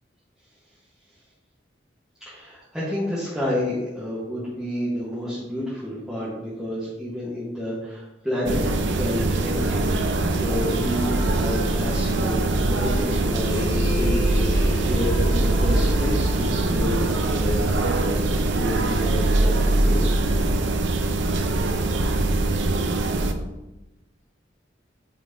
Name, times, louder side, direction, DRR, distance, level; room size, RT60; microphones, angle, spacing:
voice 1, 2.2-20.1, left 1 dB, ahead, -11 dB, 1.3 m, -30 dB
sound 1, 8.5-23.3, right 2 dB, 75° right, 0.6 m, -22 dB
sound 2, 10.6-12.3 13.0-19.1, left 2 dB, 85° left, 1.6 m, -35 dB
8.6 x 4.4 x 2.7 m, 0.99 s
head